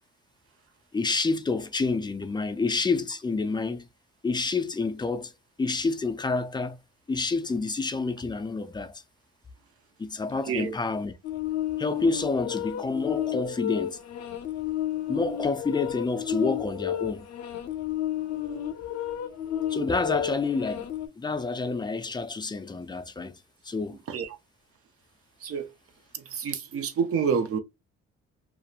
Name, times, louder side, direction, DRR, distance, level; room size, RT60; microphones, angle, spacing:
voice 1, 0.9-3.9 4.2-5.3 5.6-6.8 7.1-9.0 10.0-11.2 11.8-14.0 15.1-17.3 19.7-20.9 21.2-24.0, left 3 dB, 15° left, 0.4 m, -28 dB
voice 2, 10.4-10.8 24.1-24.3 25.4-25.7 26.1-27.6, right 6 dB, 50° right, 0.5 m, -28 dB
sound 1, 11.2-21.1, left 11 dB, 60° left, 0.6 m, -32 dB
2.8 x 2.0 x 2.3 m
supercardioid pair, 75°, 29 cm